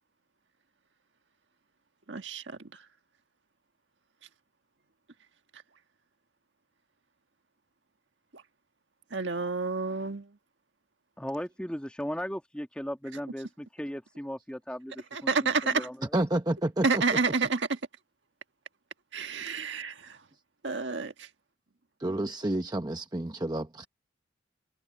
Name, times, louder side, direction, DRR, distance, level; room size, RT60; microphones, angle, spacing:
voice 1, 2.1-2.6 9.1-10.3 15.1-15.9 16.8-17.8 19.1-20.2 20.6-21.3, right 4 dB, 75° right, 1.5 m, -29 dB
voice 2, 11.2-16.1, equal, 5° left, 1.7 m, -37 dB
voice 3, 16.1-17.2 22.0-23.9, right 1 dB, 20° right, 0.8 m, -30 dB
head